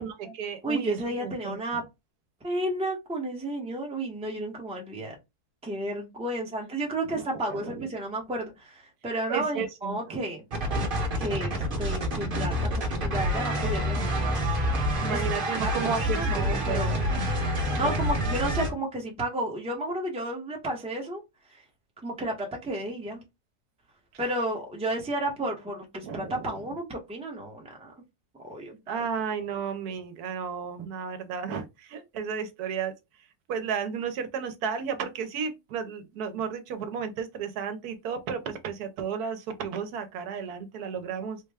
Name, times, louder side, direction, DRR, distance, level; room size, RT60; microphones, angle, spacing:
voice 1, 0.0-1.6 7.0-7.9 9.3-10.2 15.0-17.0 26.0-26.6 28.9-32.9 33.5-41.4, right 6 dB, 75° right, 1.2 m, -33 dB
voice 2, 0.6-1.8 2.4-5.1 5.6-10.4 11.2-14.2 15.1-15.7 16.0-17.0 17.8-21.2 22.0-23.2 24.2-27.9 28.4-29.0, right 1 dB, 5° right, 0.7 m, -32 dB
sound 1, 10.5-18.7, equal, 40° right, 1.1 m, -27 dB
3.8 x 2.2 x 3.4 m
omnidirectional pair, 1.7 m